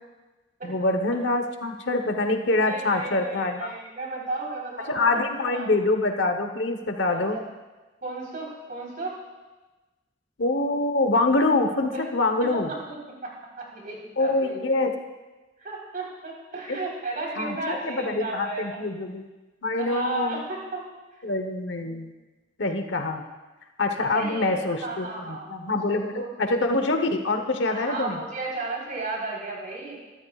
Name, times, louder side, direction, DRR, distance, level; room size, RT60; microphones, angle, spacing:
voice 1, 0.6-3.7 4.9-7.4 10.4-12.7 14.2-14.9 16.7-16.8 17.4-19.3 19.6-20.4 21.2-22.1 22.6-23.2 23.8-28.2, left 2 dB, 70° left, 6 dB, 1.1 m, -25 dB
voice 2, 2.6-5.7 7.1-7.5 8.0-9.2 11.9-12.0 12.5-14.6 15.6-18.8 19.7-20.8 21.8-22.0 24.1-26.5 27.7-30.0, right 3 dB, 50° right, -3 dB, 4.2 m, -34 dB
24.0 x 13.0 x 2.4 m, 1.2 s
head